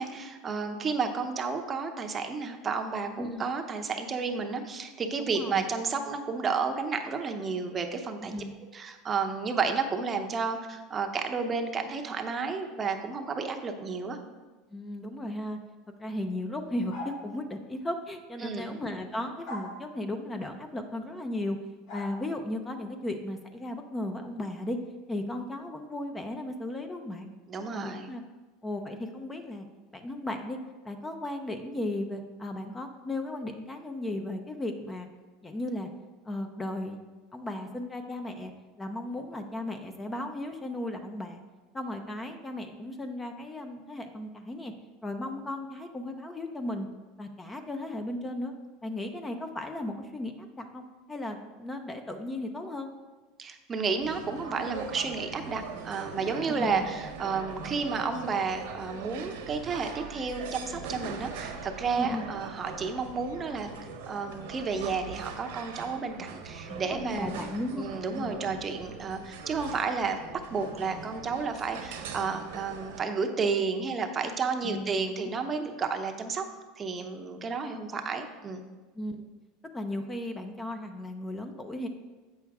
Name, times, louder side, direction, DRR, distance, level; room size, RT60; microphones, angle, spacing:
voice 1, 0.0-8.3 8.7-14.2 18.4-18.8 27.5-28.1 53.4-63.7 64.1-67.5 67.7-76.5 76.8-78.6, right 5 dB, 30° right, 5 dB, 0.8 m, -31 dB
voice 2, 5.2-5.6 8.2-8.5 14.7-15.6 16.0-21.6 21.9-24.8 25.1-27.3 27.7-28.2 28.6-29.7 29.9-30.6 30.8-35.1 35.4-35.9 36.3-37.0 37.3-38.5 38.8-41.4 41.7-44.7 45.0-46.9 47.2-48.5 48.8-52.9 56.5-56.9 62.0-62.3 66.7-67.9 68.1-68.4 74.6-75.3 79.0-79.2 79.7-81.9, left 1 dB, 15° left, 6 dB, 0.7 m, -35 dB
sound 1, 16.9-17.3 19.5-19.8 21.9-22.1, left 1 dB, 55° left, 1.9 m, -39 dB
sound 2, 54.0-73.0, right 5 dB, 80° right, 1.1 m, -41 dB
8.0 x 6.1 x 3.6 m, 1.2 s
supercardioid pair, 105°, 0 cm